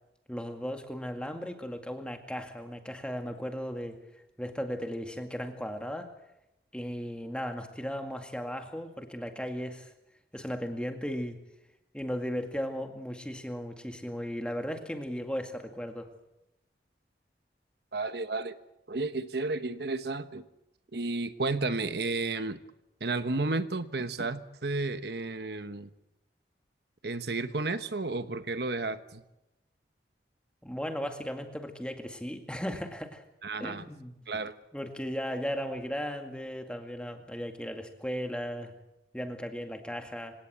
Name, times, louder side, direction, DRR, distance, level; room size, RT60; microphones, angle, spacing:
voice 1, 0.3-4.0 4.4-6.1 6.7-9.9 10.3-11.4 11.9-16.1 30.6-33.3 33.6-34.2 34.7-38.7 39.1-40.3, equal, 5° left, 5 dB, 2.1 m, -36 dB
voice 2, 17.9-18.6 18.9-20.4 20.9-22.6 23.0-25.9 27.0-29.2 33.4-33.8 34.3-34.5, right 3 dB, 70° right, 10 dB, 1.1 m, -32 dB
26.0 x 18.0 x 8.1 m, 0.91 s
head